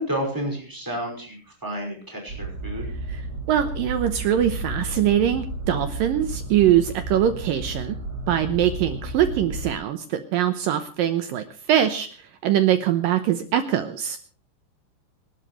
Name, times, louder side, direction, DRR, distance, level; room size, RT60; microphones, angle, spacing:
voice 1, 0.0-2.9, equal, 5° right, 1 dB, 5.2 m, -31 dB
sound 1, 2.3-9.7, right 2 dB, 20° right, 6.0 m, -32 dB
voice 2, 3.5-8.0 8.3-12.1 12.4-14.2, right 10 dB, 75° right, 9 dB, 2.1 m, -22 dB
27.0 x 12.0 x 3.2 m, 0.40 s
omnidirectional pair, 5.0 m